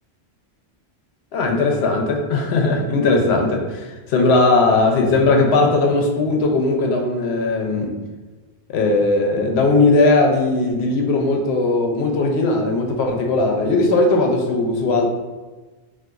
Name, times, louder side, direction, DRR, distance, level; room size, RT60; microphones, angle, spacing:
voice 1, 1.3-7.9 8.7-15.1, left 3 dB, 75° left, 1 dB, 0.8 m, -18 dB
3.8 x 2.5 x 2.3 m, 1.2 s
omnidirectional pair, 1.1 m